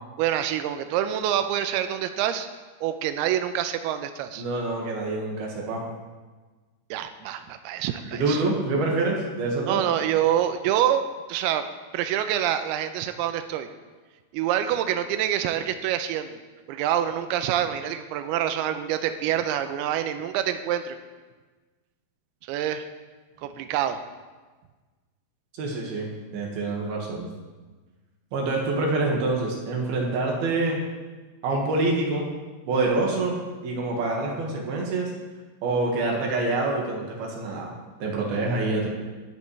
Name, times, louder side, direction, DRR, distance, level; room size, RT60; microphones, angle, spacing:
voice 1, 0.2-2.5 2.8-4.4 6.9-8.4 9.7-11.0 11.3-11.7 11.9-13.7 14.3-16.3 16.7-21.0 22.5-22.9 23.4-24.0, right 11 dB, 85° right, 9 dB, 2.3 m, -26 dB
voice 2, 4.4-5.9 8.1-9.8 25.6-27.3 28.3-30.8 31.4-32.3 32.7-35.1 35.6-37.7 38.0-38.9, right 2 dB, 65° right, -1 dB, 3.3 m, -26 dB
21.0 x 8.5 x 3.2 m, 1.3 s
omnidirectional pair, 5.2 m